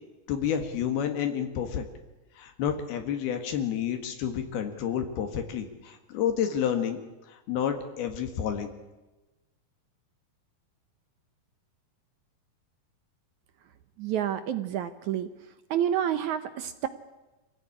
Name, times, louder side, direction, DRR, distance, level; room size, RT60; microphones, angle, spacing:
voice 1, 0.3-1.8 2.4-7.0 7.3-8.7, left 8 dB, 80° left, 6 dB, 3.6 m, -30 dB
voice 2, 14.0-15.3 15.7-16.9, right 10 dB, 70° right, 10 dB, 1.9 m, -29 dB
26.0 x 15.5 x 9.9 m, 1.1 s
omnidirectional pair, 4.3 m